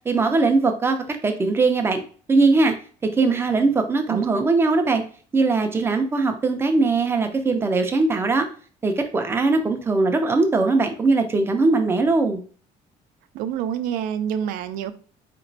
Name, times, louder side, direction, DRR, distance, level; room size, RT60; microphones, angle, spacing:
voice 1, 0.1-1.0 1.2-2.0 2.3-2.7 3.0-5.0 5.3-8.5 8.8-12.4, right 3 dB, 15° right, 0.5 m, -20 dB
voice 2, 4.1-4.4 13.3-14.9, right 9 dB, 80° right, 0.4 m, -27 dB
4.2 x 3.0 x 2.6 m
cardioid pair, 155°, 14 cm